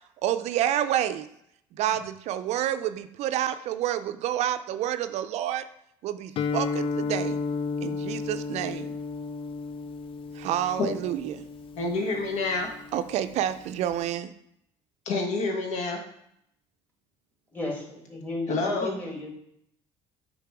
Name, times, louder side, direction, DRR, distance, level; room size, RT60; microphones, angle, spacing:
voice 1, 0.2-1.2 1.8-5.6 6.0-7.4 7.8-8.9 10.4-11.4 12.9-14.3, right 11 dB, 65° right, 0.4 m, -28 dB
Guitar, 6.4-14.1, left 4 dB, 50° left, 0.4 m, -34 dB
voice 2, 11.7-12.7 15.0-16.0 18.5-18.9, left 3 dB, 75° left, 1.4 m, -27 dB
voice 3, 17.5-19.3, left 2 dB, 15° left, 2.1 m, -34 dB
6.7 x 4.0 x 4.7 m
supercardioid pair, 90°, 12 cm